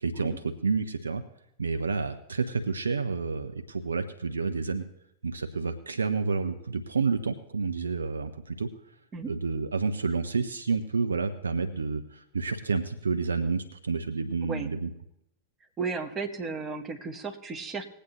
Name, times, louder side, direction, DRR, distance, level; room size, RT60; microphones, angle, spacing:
voice 1, 0.0-1.2 1.6-4.8 5.2-8.7 9.2-14.9, right 4 dB, 75° right, 8 dB, 0.7 m, -29 dB
voice 2, 14.4-14.7 15.8-17.8, right 4 dB, 25° right, 5 dB, 1.4 m, -34 dB
20.5 x 8.4 x 3.0 m, 0.77 s
figure-of-eight pair, 90°, 0 cm